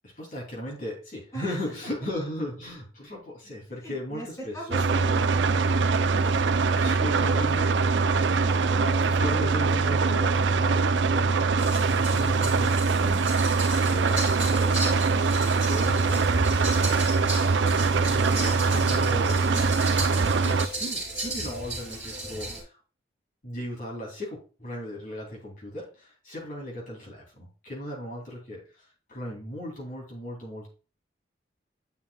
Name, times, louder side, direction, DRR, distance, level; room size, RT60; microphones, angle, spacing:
voice 1, 0.0-4.8 6.7-17.0 17.3-19.4 20.1-22.8 23.4-30.7, left 1 dB, 45° left, -3 dB, 2.9 m, -37 dB
voice 2, 3.8-6.4, right 1 dB, 15° left, -3 dB, 3.1 m, -41 dB
sound 1, 4.7-20.7, right 4 dB, 85° right, 0.5 m, -23 dB
sound 2, 11.6-22.6, right 1 dB, 5° right, 3.7 m, -35 dB
9.3 x 5.6 x 2.3 m, 0.35 s
head